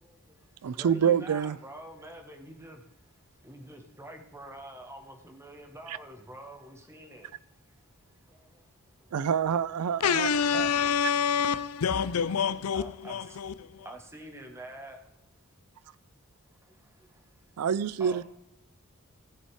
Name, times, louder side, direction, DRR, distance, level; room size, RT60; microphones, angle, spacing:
voice 1, 0.0-0.4 0.7-2.8 3.4-7.3 8.3-8.6 12.7-15.0 16.8-17.1 18.0-18.2, right 1 dB, 10° right, 1.4 m, -46 dB
voice 2, 0.6-1.6 5.9-6.0 9.1-10.7 17.6-18.2, right 7 dB, 85° right, 0.4 m, -27 dB
voice 3, 10.0-13.9, left 7 dB, 80° left, 0.5 m, -27 dB
16.5 x 5.5 x 4.8 m
head